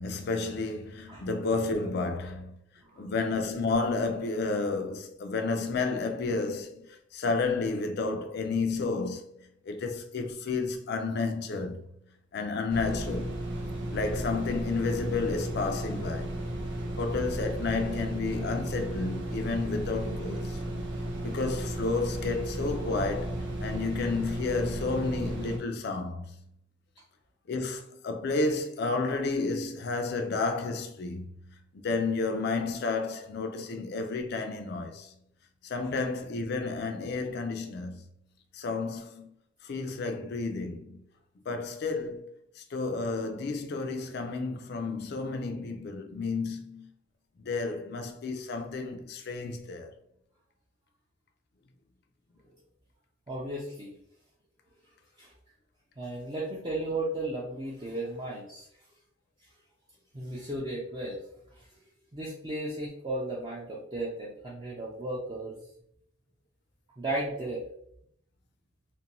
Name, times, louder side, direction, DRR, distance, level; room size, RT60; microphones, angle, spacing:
voice 1, 0.0-2.6 3.0-9.3 9.6-11.8 12.3-13.4 13.9-16.3 17.0-20.6 21.2-26.4 27.5-31.3 31.7-35.1 35.6-38.1 38.5-39.3 39.6-41.0 41.5-42.3 42.6-46.9 47.4-49.9, left 3 dB, 55° left, 0.4 m, -31 dB
sound 1, 12.7-25.6, right 1 dB, 60° right, 0.6 m, -34 dB
voice 2, 53.3-54.0 55.2-55.3 56.0-58.7 60.1-61.2 61.5-61.7 62.1-65.6 67.0-67.7, right 1 dB, 20° right, 0.4 m, -35 dB
2.5 x 2.2 x 2.9 m
head